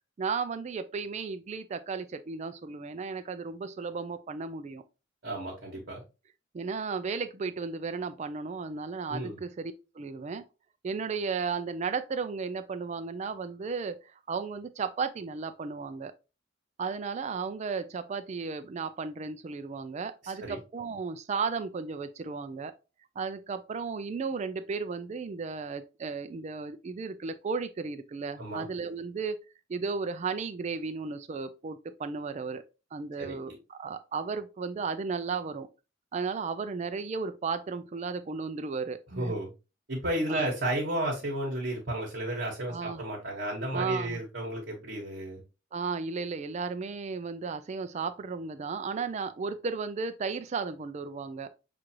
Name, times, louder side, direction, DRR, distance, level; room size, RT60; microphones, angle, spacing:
voice 1, 0.2-4.8 6.5-10.4 10.8-16.1 16.8-22.7 23.2-29.4 29.7-32.6 32.9-35.7 36.1-39.3 40.3-40.5 42.7-43.0 43.7-44.2 45.7-51.5, right 5 dB, 35° right, 0.3 m, -34 dB
voice 2, 5.2-6.0 9.1-9.4 20.2-20.6 28.4-28.6 33.2-33.5 39.1-39.5 39.9-45.4, right 1 dB, 55° right, 1.3 m, -33 dB
6.2 x 2.5 x 2.8 m
head